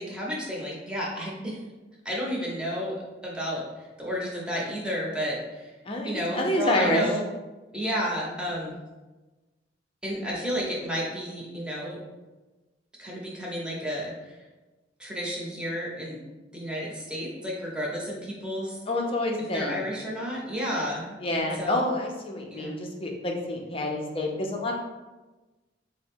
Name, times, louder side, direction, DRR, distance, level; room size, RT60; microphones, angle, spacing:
voice 1, 0.0-1.6 2.0-3.0 3.2-5.7 6.0-7.2 7.7-8.8 10.0-12.0 13.0-14.4 15.0-16.3 16.5-18.8 19.5-21.8 22.5-22.7, equal, 5° right, -5 dB, 0.9 m, -32 dB
voice 2, 5.8-7.0 18.9-19.8 21.2-24.8, left 1 dB, 30° left, 0 dB, 0.6 m, -28 dB
4.0 x 2.1 x 4.3 m, 1.2 s
head